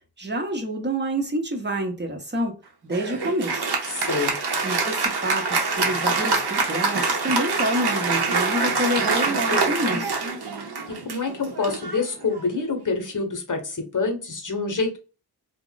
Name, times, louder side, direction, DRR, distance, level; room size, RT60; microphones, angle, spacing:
voice 1, 0.2-2.5 2.8-3.7 4.6-10.2, right 1 dB, 25° right, 3 dB, 0.8 m, -28 dB
Applause, 2.9-12.7, right 4 dB, 70° right, 0.8 m, -25 dB
voice 2, 3.9-4.3 10.9-15.0, left 4 dB, 50° left, 5 dB, 0.9 m, -27 dB
2.4 x 2.1 x 3.8 m, 0.34 s
wide cardioid pair, 90°, 41 cm